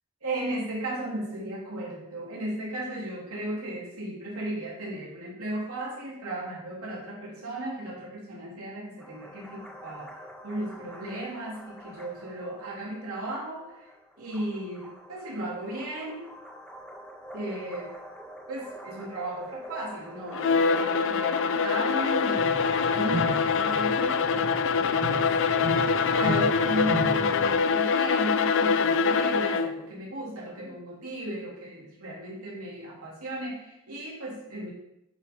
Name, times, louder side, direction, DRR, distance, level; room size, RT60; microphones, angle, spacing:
voice 1, 0.2-10.1 10.4-13.7 14.2-16.3 17.3-17.9 18.5-25.3 26.1-34.7, right 1 dB, 85° right, -5 dB, 3.3 m, -35 dB
sound 1, 9.0-28.3, equal, 5° left, 1.6 m, -44 dB
Bowed string instrument, 20.3-29.8, left 5 dB, 60° left, 0.5 m, -24 dB
sound 2, 22.4-27.5, right 1 dB, 25° right, 2.0 m, -35 dB
11.0 x 4.6 x 5.5 m, 0.85 s
head